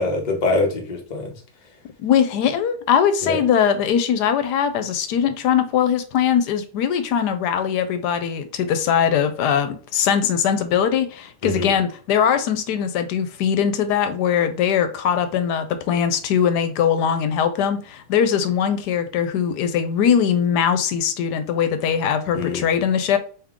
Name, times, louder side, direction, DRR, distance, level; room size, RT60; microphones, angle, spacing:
voice 1, 0.0-1.3 3.2-3.4 11.4-11.7 22.3-22.7, left 2 dB, 35° left, 0.8 m, -24 dB
voice 2, 2.0-23.2, left 8 dB, 85° left, 1.2 m, -21 dB
3.6 x 2.9 x 3.5 m
omnidirectional pair, 1.7 m